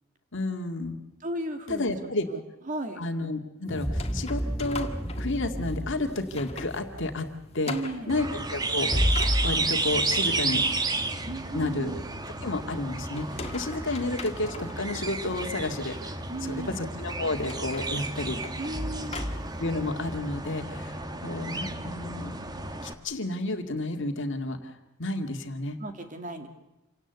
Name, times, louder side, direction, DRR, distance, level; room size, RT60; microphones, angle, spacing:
voice 1, 0.3-1.0 1.7-2.3 3.0-4.9 5.2-7.3 7.5-7.7 8.1-9.1 9.4-10.7 11.5-11.9 12.4-18.4 19.6-22.4 22.8-24.7 25.0-25.8, left 2 dB, 60° left, 6 dB, 2.1 m, -31 dB
voice 2, 1.2-2.4 2.7-3.0 7.7-8.1 11.3-12.0 16.3-16.8 18.6-19.3 25.8-26.5, right 1 dB, 40° right, 6 dB, 2.4 m, -35 dB
sound 1, 3.7-8.4, equal, ahead, 0.9 m, -34 dB
sound 2, 3.8-5.8 6.2-6.8 7.1-7.2 7.6-8.0 8.7-10.0 13.2-14.9 15.6-15.7 17.5-19.7, left 1 dB, 30° left, 1.7 m, -33 dB
sound 3, 8.1-22.9, right 3 dB, 20° right, 1.4 m, -32 dB
27.5 x 18.0 x 8.1 m, 0.93 s
head